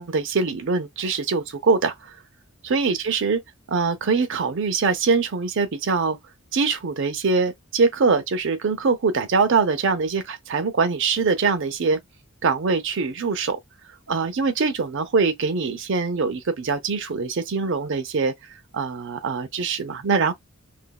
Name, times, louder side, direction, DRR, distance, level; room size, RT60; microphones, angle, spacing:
voice 1, 0.0-2.2 2.6-3.4 3.7-6.2 6.5-12.0 12.4-13.6 14.1-18.3 18.7-20.3, right 4 dB, 55° right, 0.6 m, -23 dB
2.9 x 2.6 x 2.2 m
head